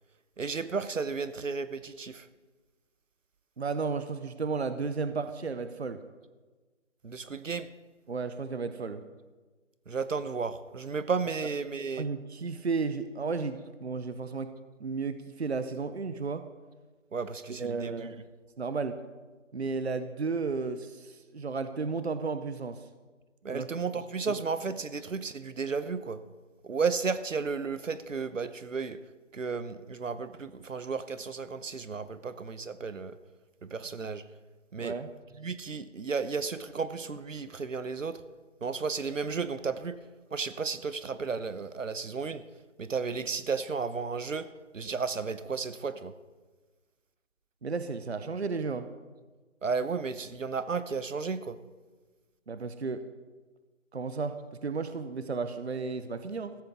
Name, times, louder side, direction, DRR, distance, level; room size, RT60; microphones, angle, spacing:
voice 1, 0.4-2.3 7.0-7.7 9.9-12.1 17.1-17.9 23.4-26.2 26.6-29.0 29.3-33.2 33.6-34.2 34.7-34.9 35.4-38.2 38.6-40.0 40.3-42.4 42.8-44.5 44.7-46.1 49.6-51.6, right 5 dB, 80° right, 13 dB, 1.0 m, -33 dB
voice 2, 3.6-6.0 8.1-9.0 11.4-11.5 12.0-14.5 14.8-16.4 17.5-18.2 18.6-19.0 19.5-22.8 23.5-23.7 34.8-35.1 47.6-48.9 52.5-53.0 53.9-54.4 54.6-56.6, right 4 dB, 55° right, 11 dB, 0.8 m, -33 dB
15.0 x 14.0 x 3.6 m, 1.3 s
figure-of-eight pair, 180°, 38 cm